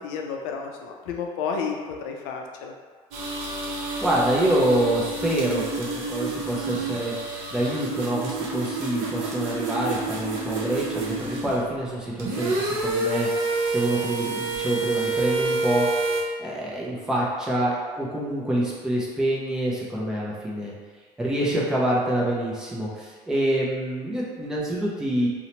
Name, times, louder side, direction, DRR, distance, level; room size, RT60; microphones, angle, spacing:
voice 1, 0.0-2.7, left 5 dB, 75° left, 2 dB, 0.4 m, -31 dB
sound 1, 3.1-11.6 12.1-16.2, right 3 dB, 60° right, 0.6 m, -28 dB
voice 2, 4.0-7.1 7.5-13.3 13.7-15.9 16.4-20.7 21.2-25.3, right 1 dB, 5° right, -5 dB, 0.4 m, -26 dB
2.8 x 2.1 x 2.8 m, 1.5 s
cardioid pair, 170°, 14 cm